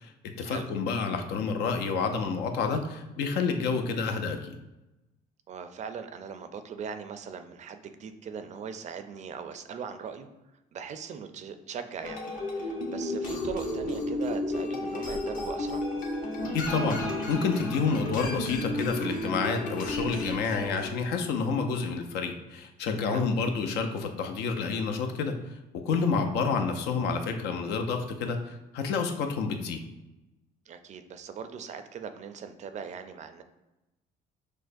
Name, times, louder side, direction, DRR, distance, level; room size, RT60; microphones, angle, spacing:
voice 1, 0.0-4.6 16.5-17.0 17.3-25.4 25.8-29.8, left 5 dB, 80° left, 5 dB, 0.5 m, -29 dB
voice 2, 5.5-10.3 10.7-12.2 12.5-15.8 23.0-23.2 30.7-33.4, right 6 dB, 45° right, 9 dB, 0.4 m, -40 dB
sound 1, 12.0-20.9, left 1 dB, 55° left, 0.9 m, -32 dB
6.2 x 2.1 x 2.6 m, 0.99 s
cardioid pair, 110°, 17 cm